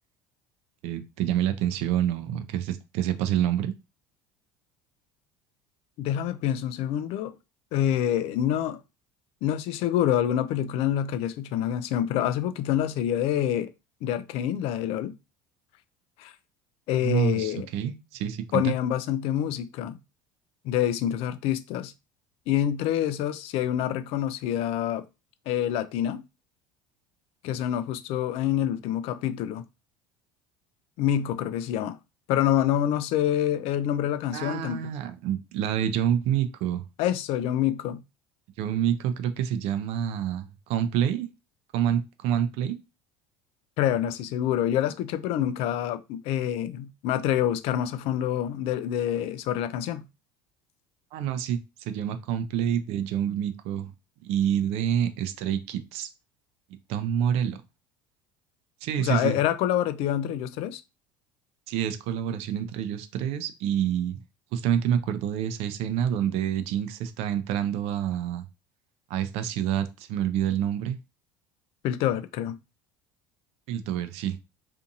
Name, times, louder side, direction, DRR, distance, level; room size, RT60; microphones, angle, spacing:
voice 1, 0.8-3.7 17.0-18.7 34.3-36.8 38.6-41.3 41.7-42.8 51.1-53.9 54.2-56.1 56.9-57.6 58.8-59.4 61.7-64.2 64.5-68.4 69.1-71.0 73.7-74.4, right 9 dB, 65° right, 0.5 m, -27 dB
voice 2, 6.0-7.4 7.7-8.8 9.4-13.7 14.0-15.1 16.2-16.3 16.9-17.7 18.5-19.9 20.6-21.9 22.5-25.0 25.5-26.2 27.4-29.6 31.0-32.0 32.3-34.8 37.0-38.0 43.8-50.0 59.0-60.8 71.8-72.6, left 11 dB, 60° left, 0.4 m, -26 dB
2.6 x 2.5 x 2.6 m
hypercardioid pair, 80°, 11 cm